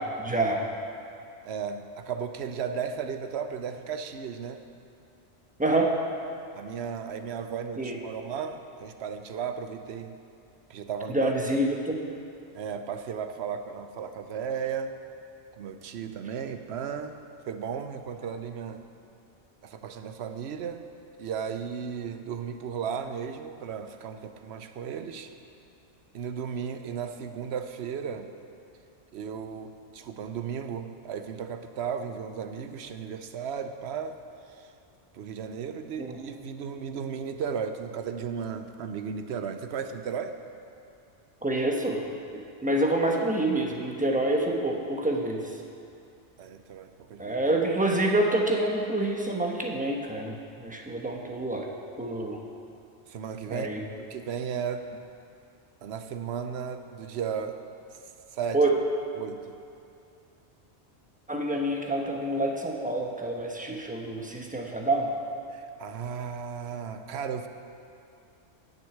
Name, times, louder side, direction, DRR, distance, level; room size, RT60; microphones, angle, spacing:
voice 1, 0.2-0.6 5.6-5.9 7.8-8.0 11.1-12.0 36.0-36.2 41.4-42.0 42.3-45.5 47.2-51.7 52.0-52.4 53.5-53.8 58.5-58.8 61.3-65.1, right 1 dB, 10° right, 0 dB, 1.0 m, -27 dB
voice 2, 1.4-4.6 6.6-10.2 10.7-11.3 12.5-15.0 15.5-17.2 17.5-18.8 19.6-20.8 21.2-25.3 26.1-28.3 29.1-34.2 34.5-34.7 35.1-40.4 46.4-47.3 53.1-53.7 54.0-54.9 55.8-57.6 58.3-58.6 59.2-59.6 65.5-67.5, right 7 dB, 70° right, 8 dB, 0.9 m, -35 dB
10.5 x 6.4 x 8.3 m, 2.5 s
omnidirectional pair, 1.2 m